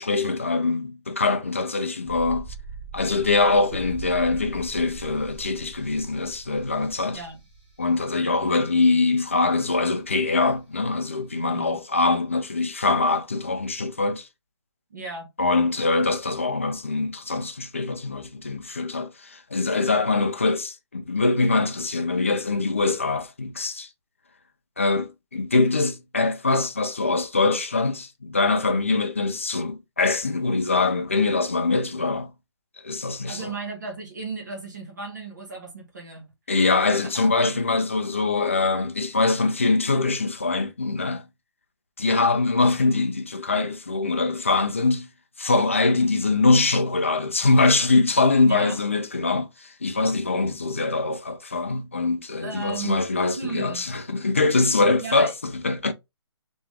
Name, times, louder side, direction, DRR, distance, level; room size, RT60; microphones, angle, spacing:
voice 1, 0.0-2.5 2.9-7.2 7.8-14.3 15.4-23.9 24.8-32.3 32.8-33.5 36.5-41.2 42.0-45.1 45.4-55.9, left 3 dB, 30° left, 0.4 m, -23 dB
sound 1, 2.1-8.9 9.2-9.3, right 4 dB, 20° right, 1.1 m, -40 dB
voice 2, 11.4-11.8 14.9-15.3 33.3-36.3 37.1-37.6 48.5-48.8 52.4-53.0 53.4-53.8 55.0-55.3, right 4 dB, 40° right, 1.2 m, -35 dB
3.4 x 2.9 x 3.4 m
hypercardioid pair, 180°, 15 cm